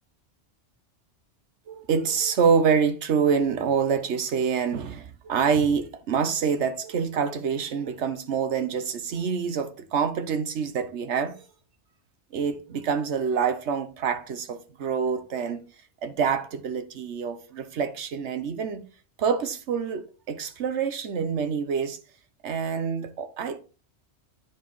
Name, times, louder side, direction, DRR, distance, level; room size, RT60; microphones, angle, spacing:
voice 1, 1.7-11.4 12.3-15.6 16.0-18.8 19.2-22.0 22.4-23.6, right 6 dB, 80° right, 1.2 m, -26 dB
10.5 x 4.7 x 3.1 m
omnidirectional pair, 1.2 m